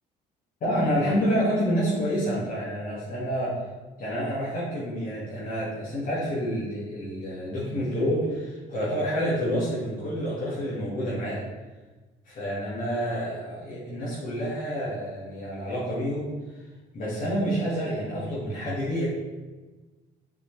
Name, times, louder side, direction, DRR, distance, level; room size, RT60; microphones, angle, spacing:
voice 1, 0.6-3.6 4.0-11.4 12.3-16.3 16.9-19.0, equal, 55° left, -9 dB, 2.2 m, -28 dB
7.4 x 4.9 x 3.4 m, 1.2 s
cardioid pair, 110°, 17 cm